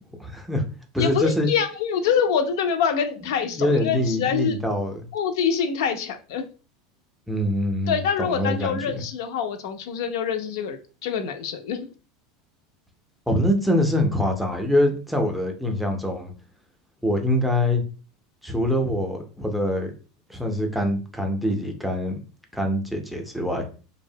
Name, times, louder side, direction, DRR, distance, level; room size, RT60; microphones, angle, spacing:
voice 1, 0.2-0.6 0.9-1.5 3.5-5.0 7.3-9.0 13.3-16.3 17.0-17.8 18.4-19.9 20.3-22.2 22.5-23.7, left 1 dB, ahead, 3 dB, 0.4 m, -24 dB
voice 2, 1.0-4.6 5.1-6.5 7.9-11.9, left 7 dB, 75° left, 8 dB, 0.4 m, -25 dB
2.6 x 2.0 x 2.7 m, 0.35 s
supercardioid pair, 140°, 2 cm